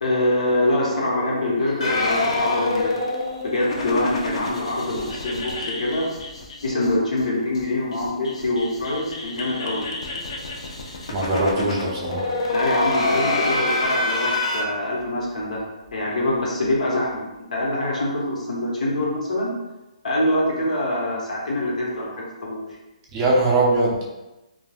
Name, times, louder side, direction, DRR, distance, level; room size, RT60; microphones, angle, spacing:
voice 1, 0.0-2.9 3.4-6.1 6.6-9.9 12.5-15.6 15.9-17.2 17.5-19.5 20.0-22.6, left 1 dB, 85° left, -3 dB, 1.0 m, -24 dB
sound 1, 1.8-6.9 7.2-7.3 7.5-7.6 7.9-14.6, left 2 dB, 55° left, 0.5 m, -27 dB
voice 2, 11.1-12.3 23.1-24.0, right 2 dB, 15° right, -4 dB, 0.4 m, -21 dB
2.3 x 2.2 x 3.2 m, 1.0 s
hypercardioid pair, 170°, 4 cm